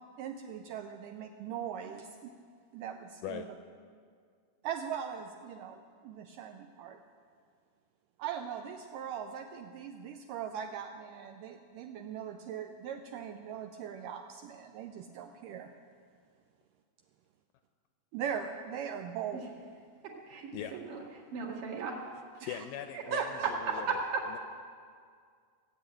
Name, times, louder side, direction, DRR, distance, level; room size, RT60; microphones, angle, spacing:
voice 1, 0.2-2.3 2.7-3.4 4.6-7.0 8.2-15.7 18.1-19.5 22.4-22.6 23.1-23.8, right 8 dB, 80° right, 5 dB, 2.0 m, -40 dB
voice 2, 20.0-21.0 21.3-22.0 22.3-22.5 23.9-24.2, right 4 dB, 60° right, -3 dB, 3.4 m, -36 dB
voice 3, 22.5-24.0 24.3-24.4, left 11 dB, 80° left, 8 dB, 2.0 m, -40 dB
16.5 x 8.3 x 8.9 m, 2.1 s
omnidirectional pair, 4.3 m